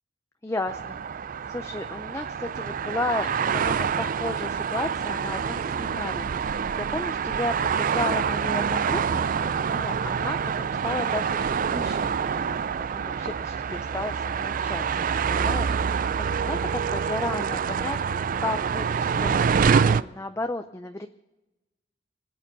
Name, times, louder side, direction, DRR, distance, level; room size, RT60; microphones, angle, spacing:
voice 1, 0.4-1.0 1.5-12.6 12.9-21.1, left 2 dB, 15° left, 7 dB, 0.5 m, -34 dB
sound 1, 0.7-20.0, right 6 dB, 50° right, 0.4 m, -26 dB
25.5 x 8.6 x 5.4 m, 1.0 s
head